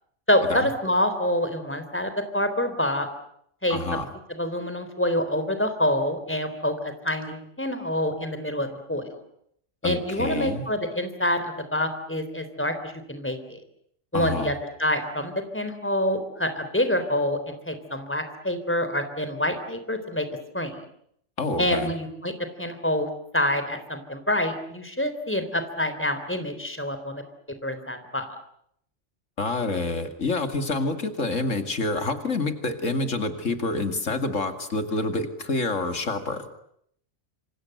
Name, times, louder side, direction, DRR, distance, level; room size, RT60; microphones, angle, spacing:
voice 1, 0.3-3.1 3.6-3.8 4.4-9.2 9.8-13.6 14.1-14.5 14.8-20.3 20.5-20.8 21.6-22.3 22.6-23.1 23.3-27.2 27.5-28.3, left 1 dB, 10° left, 9 dB, 3.6 m, -26 dB
voice 2, 3.7-4.1 9.8-10.6 14.1-14.5 21.4-21.9 29.4-36.5, left 3 dB, 90° left, 8 dB, 2.8 m, -27 dB
27.0 x 26.5 x 7.9 m, 0.70 s
omnidirectional pair, 1.3 m